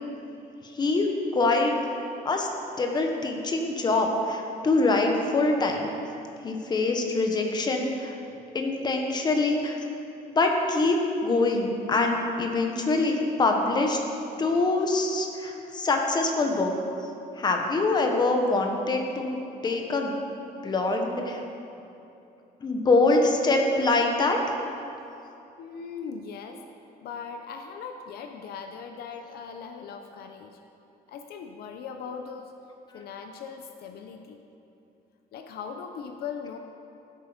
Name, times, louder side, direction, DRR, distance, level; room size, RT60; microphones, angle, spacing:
voice 1, 0.6-1.8 2.2-2.5 2.8-5.9 6.4-8.1 8.5-9.8 10.3-14.0 14.4-16.7 17.3-19.4 19.6-20.2 20.6-21.4 22.6-24.6 32.9-33.0, left 2 dB, 25° left, 2 dB, 1.2 m, -24 dB
voice 2, 25.6-26.6 27.0-30.6 31.1-32.5 32.9-34.4 35.3-36.6, left 6 dB, 70° left, 5 dB, 0.8 m, -39 dB
14.5 x 8.3 x 5.1 m, 2.8 s
cardioid pair, 160°, 17 cm